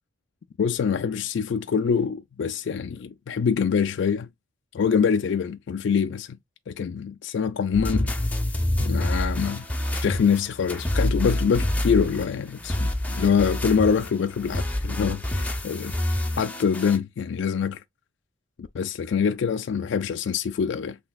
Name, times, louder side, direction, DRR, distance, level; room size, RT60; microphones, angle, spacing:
voice 1, 0.6-4.3 4.7-6.3 6.7-8.1 8.8-9.6 9.9-15.9 16.4-17.8 18.6-21.0, left 6 dB, 65° left, 0.3 m, -25 dB
sound 1, 7.7-17.0, left 1 dB, 10° left, 0.7 m, -27 dB
5.9 x 3.3 x 2.3 m
head